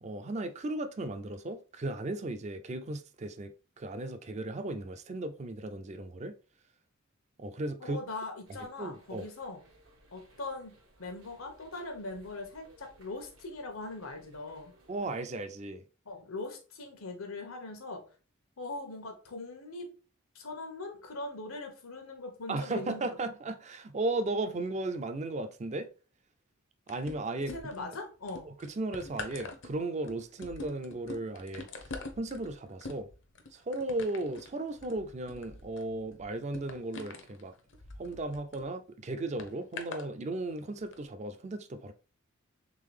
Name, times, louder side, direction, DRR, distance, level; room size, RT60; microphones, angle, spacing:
voice 1, 0.0-6.3 7.4-8.0 8.8-9.3 14.9-15.8 22.5-25.9 26.9-27.9 28.5-31.9 32.2-33.1 33.5-37.5 38.0-41.9, right 2 dB, 35° right, 0.4 m, -36 dB
voice 2, 7.8-9.6 10.1-14.7 16.0-18.1 18.6-19.9 20.3-23.2 27.5-28.5, left 2 dB, 85° left, 1.1 m, -41 dB
sound 1, 8.4-15.2, right 1 dB, 85° right, 1.2 m, -61 dB
sound 2, 26.9-27.9 28.3-38.6 39.4-40.1 40.8-40.9, left 3 dB, 60° left, 0.7 m, -45 dB
3.8 x 3.3 x 3.3 m
head